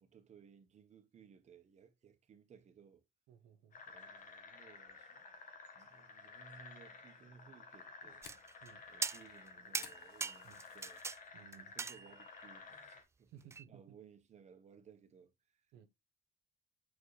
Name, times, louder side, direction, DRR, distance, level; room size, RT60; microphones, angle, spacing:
voice 1, 0.0-3.0 3.9-5.2 5.7-8.2 8.9-11.0 11.7-13.3 13.7-15.9, right 6 dB, 40° right, 1.3 m, -61 dB
voice 2, 3.3-3.8 8.6-8.8 10.4-10.6 11.3-11.7 13.3-14.0 15.7-15.9, right 9 dB, 85° right, 1.0 m, -58 dB
sound 1, 3.7-13.0, left 4 dB, 50° left, 1.7 m, -54 dB
Fire, 7.6-11.2 11.6-12.0 12.4-12.5 13.0-13.4, left 8 dB, 70° left, 1.2 m, -58 dB
sound 2, 8.2-8.7 9.0-9.5 9.7-11.2 11.5-12.4 13.5-13.6, right 4 dB, 15° right, 0.3 m, -40 dB
6.7 x 4.7 x 3.2 m
cardioid pair, 110°, 17 cm